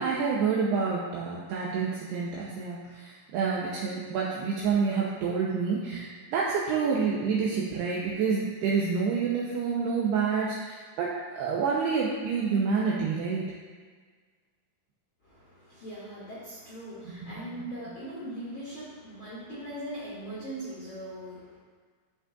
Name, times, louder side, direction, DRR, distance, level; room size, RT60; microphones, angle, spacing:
voice 1, 0.0-13.5 17.1-17.4, right 5 dB, 80° right, -5 dB, 2.4 m, -28 dB
voice 2, 15.2-21.6, right 1 dB, 40° left, -10 dB, 2.1 m, -40 dB
13.5 x 5.5 x 2.5 m, 1.5 s
omnidirectional pair, 5.6 m